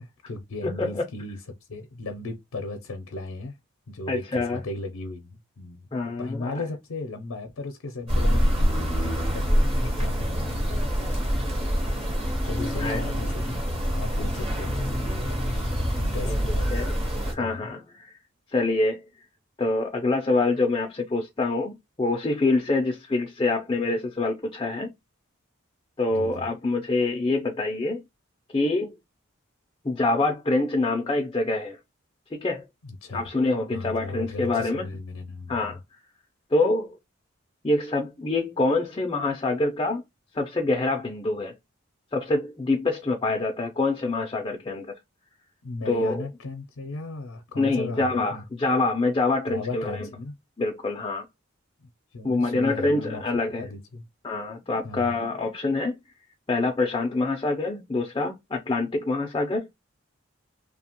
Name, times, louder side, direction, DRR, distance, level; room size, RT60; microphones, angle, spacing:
voice 1, 0.0-1.4 1.7-3.6 3.9-5.9 6.2-9.5 9.8-10.9 11.2-11.5 12.4-15.5 15.9-16.8 17.4-17.7 26.1-26.5 32.8-33.3 33.7-35.7 45.6-48.4 49.5-50.3 51.8-54.0 54.8-55.2, left 2 dB, 80° left, 0.5 m, -36 dB
voice 2, 0.6-1.0 4.1-4.6 5.9-6.6 12.8-13.0 14.2-14.3 16.2-16.4 16.7-16.9 17.3-18.1 18.5-19.0 19.6-24.9 26.0-28.0 28.5-28.9 29.8-31.8 32.3-32.6 33.1-34.9 35.5-35.8 36.5-37.0 37.6-40.0 40.3-41.5 42.1-44.9 45.9-46.2 47.6-50.1 50.6-51.3 52.2-53.7 54.2-56.0 56.5-59.6, left 2 dB, 20° left, 0.4 m, -26 dB
sound 1, 8.1-17.3, equal, 25° right, 0.8 m, -25 dB
2.8 x 2.1 x 2.9 m
head